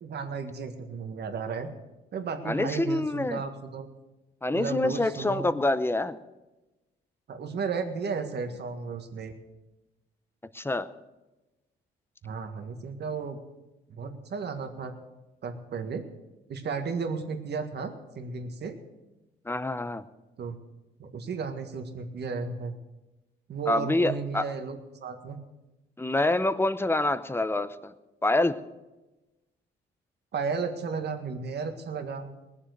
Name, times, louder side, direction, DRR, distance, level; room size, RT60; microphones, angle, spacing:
voice 1, 0.0-1.7 2.1-3.9 4.5-5.5 7.3-9.3 12.2-13.4 13.9-14.9 15.4-16.0 16.5-18.7 20.4-20.6 21.0-22.7 23.5-25.4 30.3-32.3, right 5 dB, 55° right, 6 dB, 1.8 m, -34 dB
voice 2, 2.4-3.4 4.4-6.2 10.5-10.9 19.4-20.0 23.7-24.5 26.0-27.9 28.2-28.6, left 2 dB, 10° left, 13 dB, 0.7 m, -26 dB
19.5 x 7.2 x 6.6 m, 1.1 s
cardioid pair, 90°, 20 cm